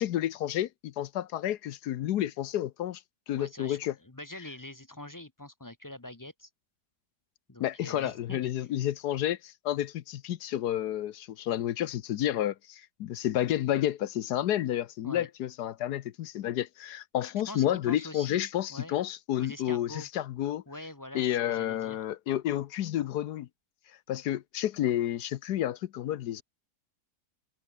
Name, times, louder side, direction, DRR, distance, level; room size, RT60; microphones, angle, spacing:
voice 1, 0.0-3.0 3.3-3.9 7.6-20.6 21.1-23.5 24.1-26.4, left 12 dB, 70° left, 1.2 m, -30 dB
voice 2, 3.3-6.5 7.5-8.7 15.0-15.3 17.5-19.0 19.3-20.1 20.7-22.1, left 1 dB, 15° left, 0.6 m, -45 dB
omnidirectional pair, 1.9 m